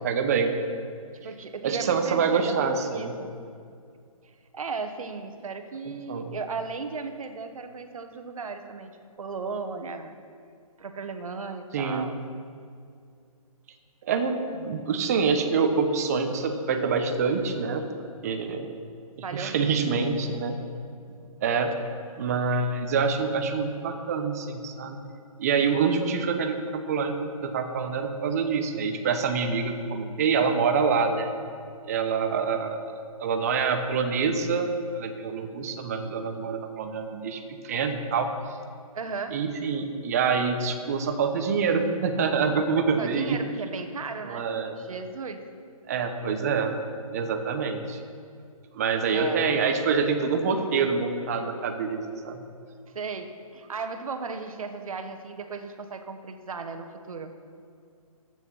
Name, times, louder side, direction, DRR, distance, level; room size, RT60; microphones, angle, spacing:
voice 1, 0.0-0.5 1.6-3.2 5.8-6.3 11.7-12.1 14.0-17.8 18.2-18.7 19.2-20.6 21.1-21.7 22.2-25.0 25.4-31.3 31.9-34.7 34.9-38.3 39.3-43.4 44.2-44.7 45.9-46.8 47.1-48.0 48.7-52.4, right 5 dB, 25° right, 6 dB, 0.9 m, -26 dB
voice 2, 1.1-3.3 4.5-8.9 9.2-10.2 10.8-12.2 19.2-20.0 38.9-39.4 43.0-44.5 44.8-45.4 49.1-49.4 52.9-57.3, right 4 dB, 70° right, 7 dB, 1.3 m, -36 dB
12.0 x 9.0 x 5.5 m, 2.3 s
hypercardioid pair, 170°, 19 cm